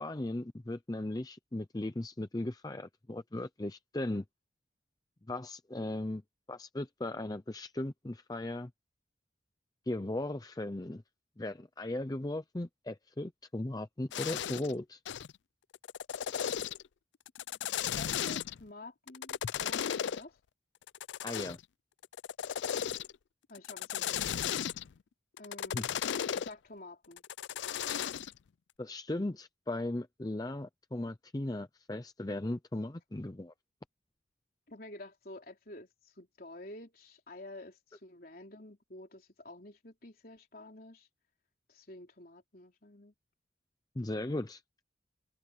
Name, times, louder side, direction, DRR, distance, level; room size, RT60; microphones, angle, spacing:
voice 1, 0.0-4.2 5.3-6.2 6.5-8.7 9.9-11.0 11.4-15.0 21.2-21.6 25.7-25.8 28.8-33.5 44.0-44.8, left 1 dB, 20° left, 0.6 m, -37 dB
sound 1, 14.1-14.7 15.0-15.3 15.7-16.9 17.3-18.6 19.1-20.2 20.9-21.6 22.0-23.1 23.5-24.9 25.4-26.5 27.2-28.3, left 9 dB, 75° left, 0.4 m, -35 dB
voice 2, 18.0-20.3 23.5-24.6 25.4-25.9 26.3-27.2 34.7-41.1 41.7-43.1, left 1 dB, 50° left, 3.9 m, -50 dB
head